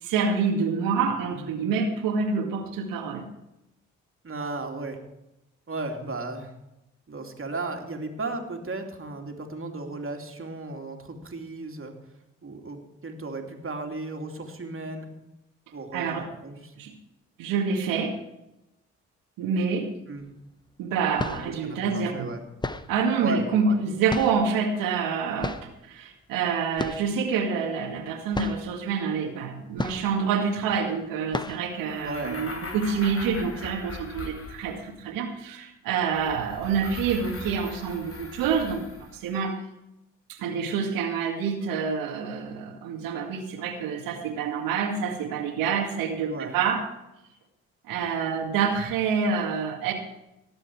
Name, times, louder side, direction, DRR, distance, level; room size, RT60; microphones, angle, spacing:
voice 1, 0.0-3.3 15.9-16.3 16.8-16.9 17.4-18.2 19.4-19.9 20.8-22.3 22.9-38.8 39.1-39.6 40.3-46.9 47.9-49.9, right 5 dB, 75° right, 4 dB, 2.0 m, -27 dB
voice 2, 4.2-5.0 5.7-6.5 7.1-11.9 12.4-15.1 15.7-16.7 20.1-20.2 21.4-22.4 23.2-23.8 32.0-32.3 46.2-46.6, right 3 dB, 40° right, 3 dB, 2.8 m, -35 dB
sound 1, 20.2-20.3 21.0-21.6 22.6-23.0 24.1-24.6 25.4-25.8 26.8-27.2 27.5-27.6 28.0-28.1 28.3-28.7 29.8-30.3 30.7-30.9 31.3-31.7, left 2 dB, 15° left, 0.9 m, -33 dB
sound 2, 31.8-35.0 36.1-39.3, left 2 dB, 40° left, 2.3 m, -40 dB
18.5 x 7.7 x 4.7 m, 0.90 s
hypercardioid pair, 45°, 34 cm